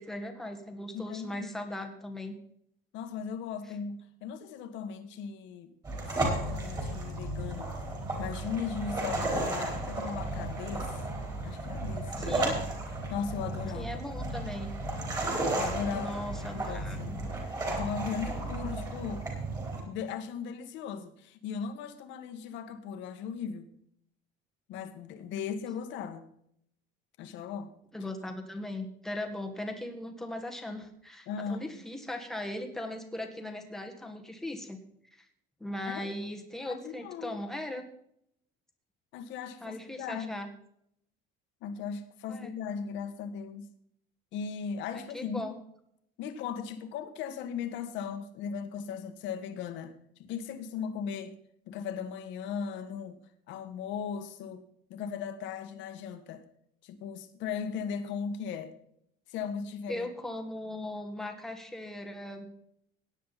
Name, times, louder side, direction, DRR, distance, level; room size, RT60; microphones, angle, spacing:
voice 1, 0.0-2.3 12.2-12.5 13.7-14.7 15.9-17.2 27.9-34.8 35.1-35.3 35.6-37.8 39.6-40.5 42.3-42.5 44.9-45.5 59.9-62.5, left 1 dB, ahead, 1.6 m, -38 dB
voice 2, 0.9-1.5 2.9-5.7 6.1-7.7 8.2-11.0 11.4-12.6 13.1-13.9 15.5-16.2 16.5-17.1 17.7-19.3 19.8-23.7 24.7-26.3 27.2-27.7 31.3-31.7 35.8-36.1 36.6-37.4 39.1-40.3 41.6-43.7 44.3-45.5 46.2-49.9 50.2-51.4 51.7-53.2 53.5-54.6 54.9-56.4 56.8-58.7 59.3-60.1, left 6 dB, 65° left, 1.7 m, -37 dB
sound 1, 5.8-19.8, right 2 dB, 20° right, 4.0 m, -34 dB
17.0 x 10.0 x 4.2 m
cardioid pair, 170°, 20 cm